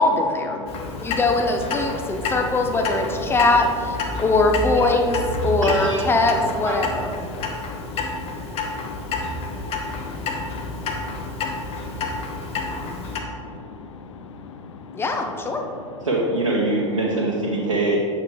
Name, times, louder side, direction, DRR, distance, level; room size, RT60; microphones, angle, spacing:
voice 1, 0.0-0.6 1.0-7.1 14.9-15.6, left 2 dB, 15° left, 4 dB, 0.7 m, -21 dB
voice 2, 0.6-1.2 1.9-2.3 4.1-4.2 7.2-15.0 15.6-16.1, left 5 dB, 70° left, 7 dB, 0.6 m, -41 dB
Clock, 0.7-13.2, left 3 dB, 35° left, 1.0 m, -29 dB
voice 3, 5.6-6.1 6.6-6.7 16.0-18.0, right 2 dB, 85° right, -5 dB, 1.0 m, -23 dB
8.9 x 6.9 x 3.2 m, 2.6 s
figure-of-eight pair, 85°, 16 cm